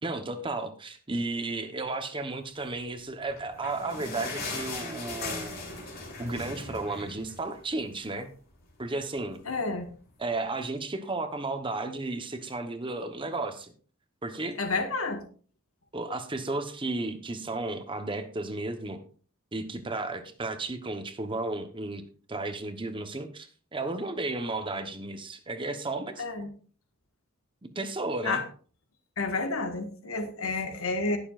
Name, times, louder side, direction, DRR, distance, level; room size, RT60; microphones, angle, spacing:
voice 1, 0.0-5.7 6.2-8.3 8.8-9.4 10.2-13.7 14.2-14.6 15.9-19.0 19.5-22.0 22.3-26.2 27.6-28.4, right 2 dB, 25° right, 8 dB, 1.0 m, -33 dB
sound 1, 3.2-7.9 8.3-8.4 8.7-8.8 9.5-9.6, left 3 dB, 45° left, 3.3 m, -38 dB
voice 2, 9.5-9.9 14.6-15.2 26.2-26.5 28.2-28.4 29.2-31.2, left 3 dB, 85° left, 6 dB, 1.6 m, -30 dB
19.5 x 6.9 x 2.5 m, 0.42 s
head